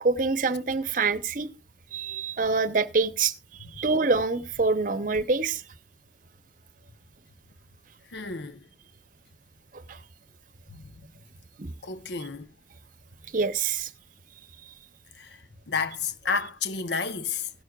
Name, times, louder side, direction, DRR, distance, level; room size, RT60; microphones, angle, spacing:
voice 1, 0.0-1.5 1.9-3.3 3.8-5.6 9.9-10.0 11.6-11.7 13.3-13.9, right 4 dB, 50° right, 0.8 m, -25 dB
voice 2, 8.1-8.6 10.7-10.9 11.8-12.5 15.2-15.4 15.7-17.5, left 5 dB, 75° left, 0.9 m, -31 dB
16.0 x 11.5 x 2.4 m
head